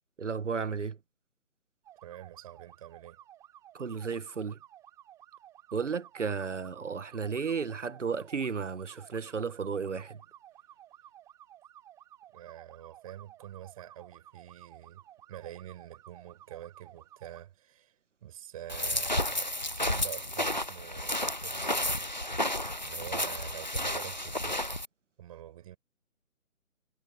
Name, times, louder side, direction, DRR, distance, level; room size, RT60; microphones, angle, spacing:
voice 1, 0.2-1.0 3.7-4.6 5.7-10.2, right 5 dB, 60° right, 1.5 m, -33 dB
sound 1, 1.8-17.4, right 12 dB, 5° right, 3.0 m, -55 dB
voice 2, 2.0-3.2 12.3-24.7 25.2-25.8, right 12 dB, 25° right, 6.8 m, -46 dB
sound 2, 18.7-24.9, left 1 dB, 35° left, 0.4 m, -32 dB
figure-of-eight pair, 155°, 42 cm